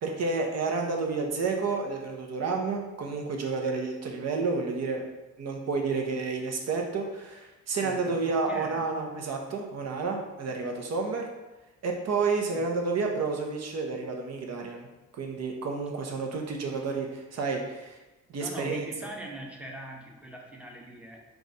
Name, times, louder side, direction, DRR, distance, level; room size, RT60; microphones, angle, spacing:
voice 1, 0.0-5.0 5.4-11.2 11.8-14.9 15.1-18.0 18.3-18.8, right 4 dB, 60° right, 2 dB, 0.8 m, -30 dB
voice 2, 7.8-8.9 12.5-12.7 18.4-21.2, right 1 dB, 5° right, -1 dB, 0.8 m, -42 dB
3.9 x 2.4 x 4.0 m, 1.1 s
cardioid pair, 90°, 30 cm